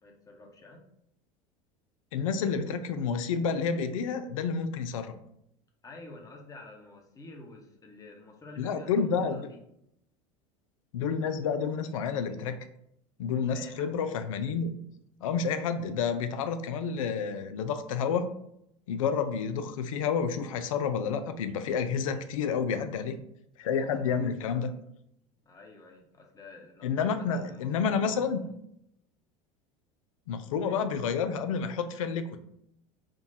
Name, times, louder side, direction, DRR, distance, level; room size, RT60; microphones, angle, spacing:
voice 1, 0.0-0.8 5.8-9.6 13.3-14.1 25.5-28.5 30.4-30.8, left 2 dB, 20° left, 1 dB, 0.9 m, -48 dB
voice 2, 2.1-5.1 8.6-9.5 10.9-12.7 13.2-14.8 15.2-18.3 18.9-23.2 23.6-24.7 26.8-28.4 30.3-32.4, left 6 dB, 85° left, 9 dB, 0.4 m, -29 dB
3.8 x 2.3 x 4.0 m, 0.76 s
hypercardioid pair, 90°, 17 cm